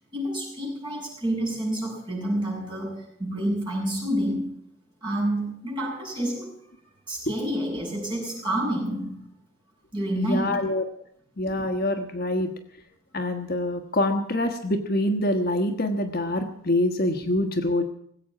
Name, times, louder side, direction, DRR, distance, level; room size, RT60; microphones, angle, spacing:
voice 1, 0.1-4.6 5.0-6.7 7.1-9.3 9.9-10.6, right 1 dB, 20° right, -5 dB, 7.1 m, -29 dB
voice 2, 10.2-10.8 11.4-12.5 13.1-17.8, left 1 dB, 45° left, 5 dB, 1.2 m, -25 dB
19.0 x 8.6 x 8.6 m, 0.70 s
head